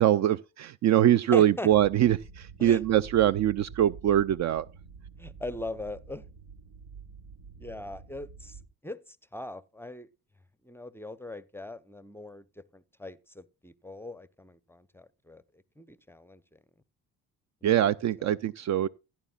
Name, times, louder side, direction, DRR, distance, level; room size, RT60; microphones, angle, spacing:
voice 1, 0.0-4.7 17.6-18.9, right 11 dB, 45° right, 0.4 m, -23 dB
voice 2, 1.3-1.7 2.6-2.8 5.2-6.2 7.6-10.1 10.6-15.4 15.8-16.6 17.6-17.7 18.2-18.4, left 2 dB, 5° left, 0.6 m, -40 dB
sound 1, 1.7-8.7, right 5 dB, 65° right, 1.0 m, -48 dB
16.0 x 9.2 x 2.4 m
hypercardioid pair, 50°, 41 cm